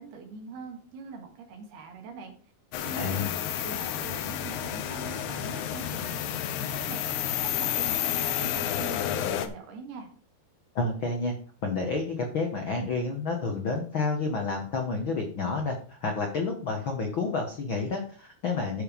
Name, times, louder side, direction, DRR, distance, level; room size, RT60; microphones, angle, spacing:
voice 1, 0.0-2.3 2.8-3.3 3.6-10.1, right 4 dB, 85° right, 3 dB, 3.9 m, -43 dB
sound 1, 2.7-9.5, left 10 dB, 90° left, 2.9 m, -30 dB
voice 2, 2.9-3.3 10.7-11.3 11.6-15.7 16.0-18.8, left 3 dB, 70° left, 3 dB, 1.1 m, -29 dB
12.0 x 5.1 x 5.2 m, 0.42 s
omnidirectional pair, 4.4 m